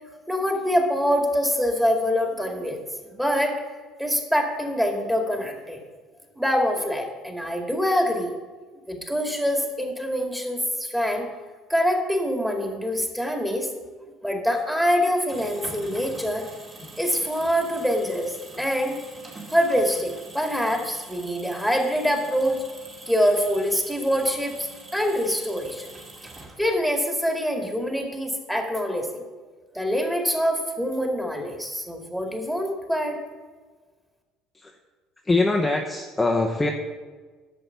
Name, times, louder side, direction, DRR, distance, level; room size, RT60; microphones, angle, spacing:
voice 1, 0.3-3.6 4.0-5.8 6.4-8.3 8.9-11.3 11.7-13.7 14.2-16.4 17.0-19.0 19.5-22.6 23.1-24.7 24.9-25.9 26.6-29.2 29.7-33.2, equal, 5° right, 2 dB, 2.1 m, -25 dB
sound 1, 15.1-26.9, right 2 dB, 25° right, 2.3 m, -44 dB
voice 2, 35.2-36.7, left 2 dB, 15° left, 1 dB, 0.9 m, -23 dB
11.0 x 6.7 x 5.8 m, 1.4 s
figure-of-eight pair, 60°, 0 cm